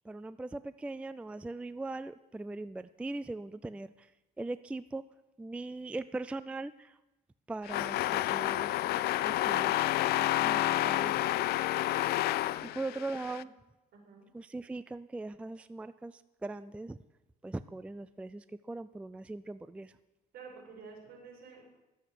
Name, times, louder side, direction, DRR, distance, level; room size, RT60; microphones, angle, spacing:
voice 1, 0.0-4.1 4.4-5.0 5.4-7.0 7.5-8.7 9.2-9.8 10.2-11.9 12.8-13.5 14.3-17.0 17.4-19.9, right 2 dB, 5° right, 14 dB, 0.3 m, -40 dB
sound 1, 7.7-13.4, left 15 dB, 70° left, 0.4 m, -29 dB
voice 2, 12.5-13.0 13.4-13.5 13.9-14.3 20.3-21.6, right 5 dB, 70° right, -1 dB, 5.0 m, -51 dB
13.0 x 7.9 x 6.6 m, 1.0 s
cardioid pair, 110°, 17 cm